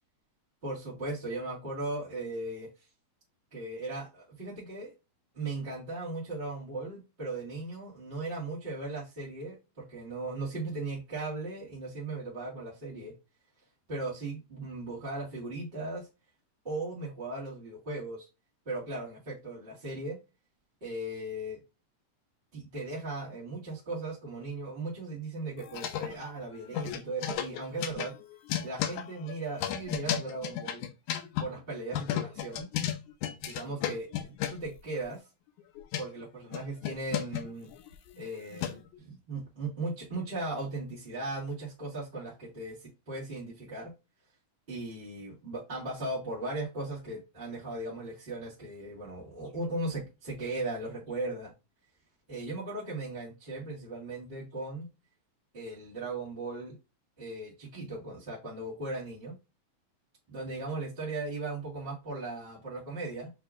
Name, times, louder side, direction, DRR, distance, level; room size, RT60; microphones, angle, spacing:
voice 1, 0.6-2.7 3.5-4.9 5.3-13.1 13.9-16.1 16.6-18.3 18.6-20.2 20.8-21.6 22.5-28.1 28.6-30.8 31.4-32.7 33.4-35.2 36.0-37.7 38.1-43.9 44.7-51.5 52.3-54.9 55.5-56.8 57.2-59.4 60.3-63.3, right 2 dB, 25° right, 1.5 m, -37 dB
sound 1, 25.6-26.4 26.7-31.5 31.9-34.7 35.6-36.0 36.5-39.0, left 11 dB, 80° left, 2.0 m, -34 dB
6.7 x 2.8 x 2.4 m
omnidirectional pair, 3.6 m